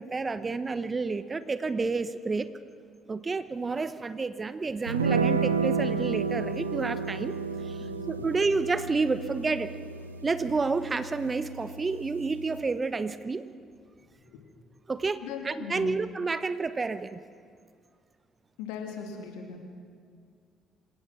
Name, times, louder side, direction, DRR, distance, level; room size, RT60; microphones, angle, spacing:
voice 1, 0.0-2.6 3.1-7.3 7.6-9.7 10.2-13.4 14.9-17.2, right 4 dB, 30° right, 13 dB, 1.0 m, -30 dB
sound 1, 4.9-12.6, right 5 dB, 90° right, 0.7 m, -31 dB
voice 2, 15.2-15.9 18.6-19.6, left 6 dB, 70° left, 3 dB, 2.9 m, -38 dB
26.5 x 17.5 x 6.1 m, 2.2 s
figure-of-eight pair, 50°, 0 cm